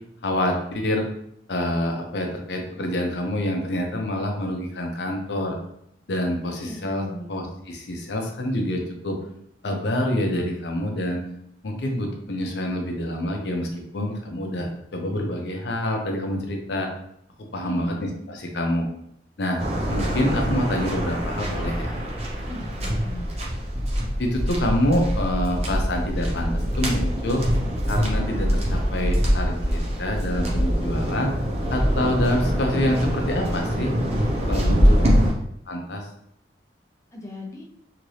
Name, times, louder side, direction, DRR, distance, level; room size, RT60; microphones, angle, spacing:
voice 1, 0.2-1.1 1.5-5.6 6.1-9.2 9.6-11.2 11.6-13.7 13.9-16.9 17.5-18.9 19.4-22.0 24.2-27.4 27.9-31.3 31.7-34.0 34.5-35.0 35.7-36.1, left 1 dB, 65° left, 2 dB, 0.6 m, -26 dB
voice 2, 6.6-7.3 17.6-18.0 22.5-23.3 34.6-35.1 37.1-37.6, left 1 dB, 15° left, -2 dB, 0.5 m, -38 dB
Waves surf, 19.6-35.3, equal, 35° right, 0.6 m, -24 dB
2.9 x 2.6 x 3.1 m, 0.74 s
head